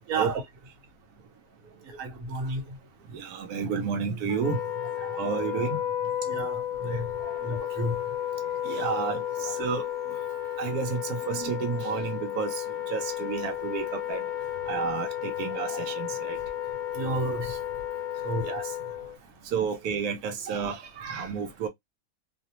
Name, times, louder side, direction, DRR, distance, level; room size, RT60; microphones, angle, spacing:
voice 1, 0.1-0.4 2.0-2.6 6.3-7.1 7.4-8.0 16.9-17.6 18.2-18.5, right 2 dB, 65° right, 1.2 m, -31 dB
voice 2, 3.1-4.6 5.1-5.8 7.2-7.3 8.6-9.8 10.6-14.2 14.7-16.4 18.4-18.7 19.5-21.7, right 6 dB, 90° right, 1.1 m, -31 dB
Wind instrument woodwind instrument, 4.3-19.2, left 11 dB, 60° left, 0.8 m, -33 dB
2.7 x 2.0 x 2.8 m
omnidirectional pair, 1.6 m